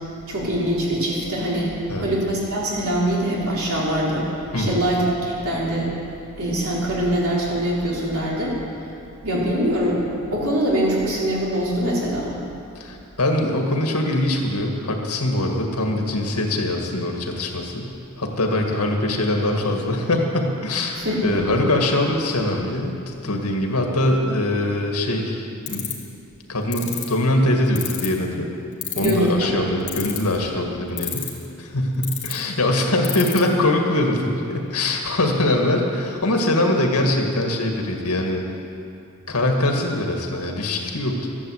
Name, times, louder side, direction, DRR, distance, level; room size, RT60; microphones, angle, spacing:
voice 1, 0.3-4.3 4.6-5.9 6.4-8.6 9.2-10.0 10.3-12.3 21.0-21.6 29.0-29.7, right 1 dB, 70° right, -5 dB, 4.0 m, -23 dB
voice 2, 4.5-4.8 12.8-17.9 18.2-25.9 26.5-28.5 29.0-31.3 31.6-38.4 39.3-41.3, left 1 dB, 85° left, 2 dB, 2.0 m, -22 dB
sound 1, 25.7-26.0 26.7-27.0 27.7-28.2 28.8-29.3 29.9-30.3 31.0-31.4 32.0-32.3 33.0-33.4, left 12 dB, 55° left, 2.3 m, -27 dB
13.5 x 11.0 x 8.1 m, 2.6 s
head